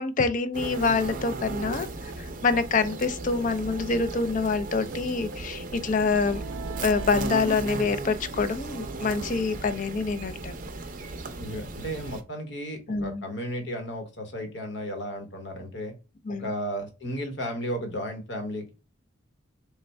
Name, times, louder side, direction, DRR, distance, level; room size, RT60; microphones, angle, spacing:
voice 1, 0.0-2.1 2.4-6.4 6.8-10.5 12.9-13.2 16.3-16.5, left 4 dB, 40° left, 0.4 m, -26 dB
sound 1, 0.5-12.2, right 3 dB, 40° right, 0.5 m, -36 dB
sound 2, 0.9-1.0 1.3-1.4 1.7-1.8 2.1-2.2 2.5-3.8 4.1-7.3, right 3 dB, 80° right, 0.7 m, -40 dB
voice 2, 11.4-15.9 16.3-18.7, equal, 65° left, 1.1 m, -34 dB
3.3 x 2.2 x 4.1 m
head